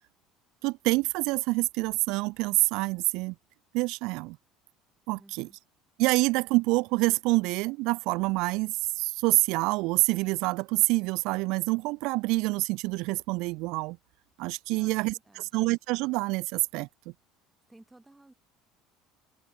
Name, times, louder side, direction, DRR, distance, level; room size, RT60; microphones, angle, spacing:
voice 1, 0.6-3.3 3.7-4.4 5.1-5.5 6.0-14.0 14.4-15.1 15.5-16.9, right 24 dB, 70° right, 0.7 m, -27 dB
voice 2, 5.2-5.6 14.7-15.5 17.7-18.3, right 2 dB, 10° right, 5.0 m, -55 dB
open air
supercardioid pair, 90°, 0 cm